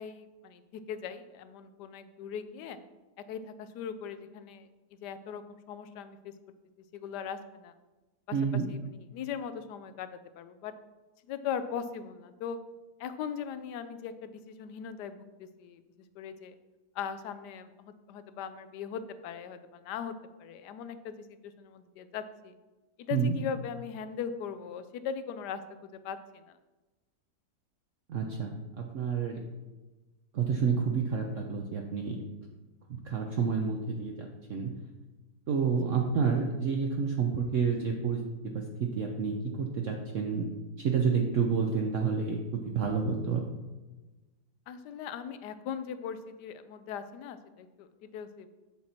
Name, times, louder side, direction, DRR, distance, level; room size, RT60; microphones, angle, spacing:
voice 1, 0.0-2.8 3.3-4.7 5.0-6.3 6.9-7.7 8.3-10.1 10.4-10.7 11.2-12.6 13.0-15.8 16.2-16.5 16.9-22.6 23.0-26.6 44.7-48.5, left 7 dB, 80° left, 12 dB, 1.2 m, -39 dB
voice 2, 8.3-8.7 23.1-23.3 28.1-29.4 30.3-32.2 32.9-34.7 35.5-40.5 40.8-43.4, right 5 dB, 60° right, 2 dB, 0.9 m, -29 dB
7.7 x 5.9 x 4.2 m, 1.2 s
omnidirectional pair, 1.8 m